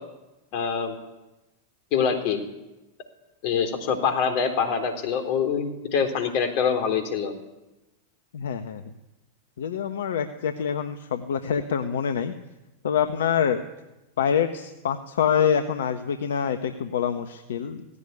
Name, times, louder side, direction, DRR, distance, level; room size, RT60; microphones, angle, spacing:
voice 1, 0.5-1.0 1.9-2.4 3.4-7.3, left 6 dB, 55° left, 7 dB, 3.9 m, -25 dB
voice 2, 8.3-8.8 9.6-12.3 12.8-13.6 14.2-17.9, left 8 dB, 75° left, 9 dB, 1.2 m, -25 dB
18.0 x 16.5 x 9.8 m, 1.0 s
hypercardioid pair, 95°, 0 cm